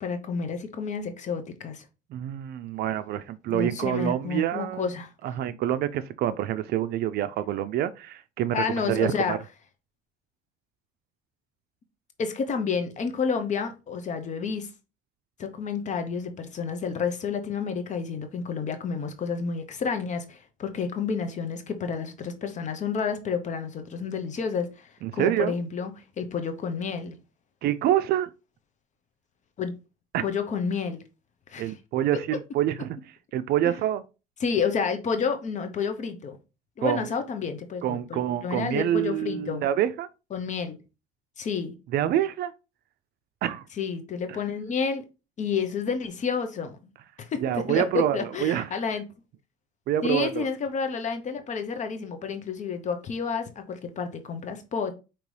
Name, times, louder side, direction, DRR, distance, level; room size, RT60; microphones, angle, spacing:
voice 1, 0.0-1.8 3.5-5.1 8.5-9.4 12.2-14.7 15.4-25.9 26.2-27.1 29.6-29.7 30.2-31.0 31.5-31.7 33.7-33.8 34.4-36.4 36.8-39.7 40.3-40.8 41.4-41.7 43.8-45.0 45.4-46.8 47.2-49.0 50.0-54.9, left 5 dB, 45° left, 0.8 m, -30 dB
voice 2, 2.1-4.9 5.2-9.4 25.0-25.5 27.6-28.3 30.1-30.2 31.6-33.0 33.3-34.0 36.8-37.0 37.8-40.1 41.9-42.5 43.4-43.6 44.3-44.4 47.4-48.7 49.9-50.5, right 11 dB, 70° right, 0.4 m, -26 dB
5.2 x 2.9 x 3.2 m
cardioid pair, 110°, 17 cm